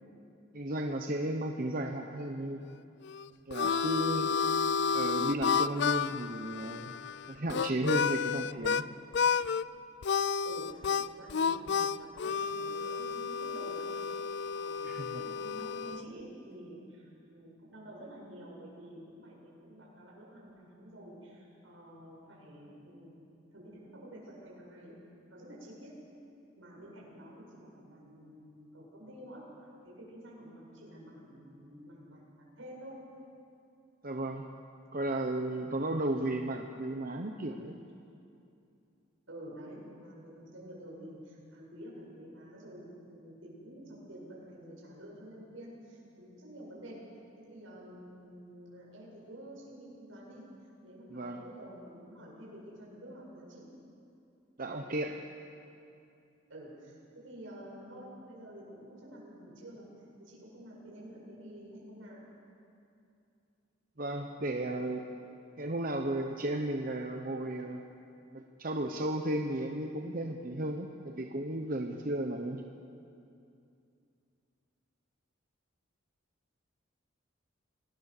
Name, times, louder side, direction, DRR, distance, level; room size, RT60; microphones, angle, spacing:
voice 1, 0.5-2.6 3.5-4.4 4.9-6.9 7.3-8.9 14.8-15.2 34.0-34.5 34.9-37.7 51.1-51.4 54.6-55.1 64.0-65.0 65.6-67.8 68.3-72.6, right 1 dB, 45° right, 3 dB, 1.0 m, -34 dB
Harmonica, 3.0-8.8 9.1-9.6 10.0-16.0, left 6 dB, 60° left, 0.4 m, -31 dB
voice 2, 10.4-13.9 14.5-25.0 25.3-26.0 26.6-33.0 39.3-47.0 47.4-50.4 50.8-53.7 56.5-59.9 60.2-62.2, right 1 dB, 80° right, -3 dB, 7.9 m, -49 dB
26.0 x 19.5 x 6.8 m, 2.6 s
head